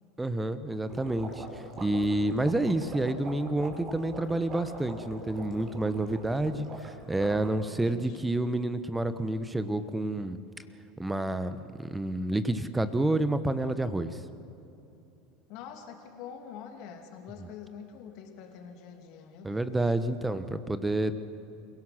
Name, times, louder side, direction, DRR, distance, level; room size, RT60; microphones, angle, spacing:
voice 1, 0.2-1.4 1.8-10.4 11.0-14.2 19.4-21.2, right 1 dB, 10° right, 12 dB, 1.2 m, -29 dB
sound 1, 0.9-7.5, right 3 dB, 35° right, 4.2 m, -43 dB
voice 2, 7.8-8.2 15.5-19.8 20.2-20.6, left 7 dB, 55° left, 4 dB, 2.8 m, -46 dB
29.0 x 17.0 x 6.0 m, 2.8 s
hypercardioid pair, 80°, 0 cm